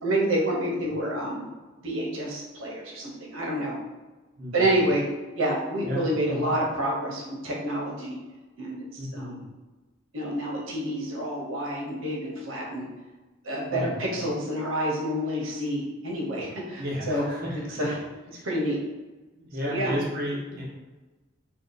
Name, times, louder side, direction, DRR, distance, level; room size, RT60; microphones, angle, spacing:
voice 1, 0.0-1.5 1.8-3.8 4.5-5.0 5.3-8.2 8.6-8.9 9.1-9.4 10.1-12.9 13.4-17.2 17.8-18.0 18.3-18.8 19.6-20.0, right 1 dB, 90° right, -2 dB, 0.9 m, -28 dB
voice 2, 4.4-4.8 5.8-6.5 9.0-9.4 13.7-14.2 16.8-17.8 18.3-18.5 19.5-20.6, equal, 45° right, -5 dB, 0.9 m, -33 dB
2.8 x 2.3 x 4.0 m, 1.2 s
head